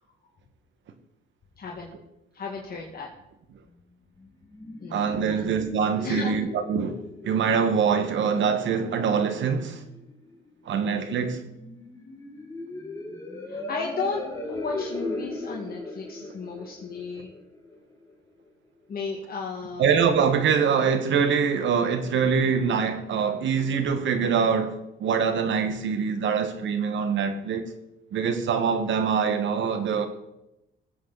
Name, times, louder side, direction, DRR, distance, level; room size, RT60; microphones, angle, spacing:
voice 1, 1.6-1.9 2.3-3.1 4.8-5.4 6.0-6.3 13.5-17.3 18.9-19.9, left 4 dB, 50° left, 1.9 m, -34 dB
sound 1, 4.2-18.1, left 2 dB, 15° left, 2.2 m, -39 dB
voice 2, 4.9-9.8 10.6-11.4 19.8-27.7 28.1-30.1, right 6 dB, 70° right, 1.6 m, -24 dB
19.5 x 8.0 x 4.1 m
cardioid pair, 90°, 20 cm